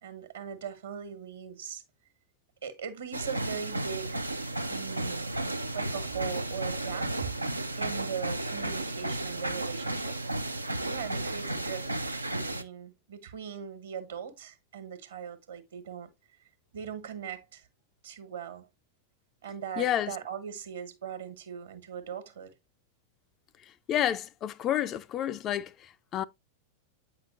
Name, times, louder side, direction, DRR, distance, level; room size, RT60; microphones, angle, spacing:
voice 1, 0.0-1.8 2.6-4.2 4.7-5.3 5.7-7.3 7.8-10.2 10.8-11.9 12.3-16.1 16.7-17.7 18.0-18.7 19.4-22.5, right 7 dB, 65° right, 1.3 m, -40 dB
sound 1, 3.1-12.6, right 1 dB, 85° right, 0.4 m, -33 dB
voice 2, 19.8-20.1 23.9-26.2, left 11 dB, 30° left, 0.4 m, -30 dB
8.6 x 5.7 x 2.5 m
figure-of-eight pair, 90°, 0 cm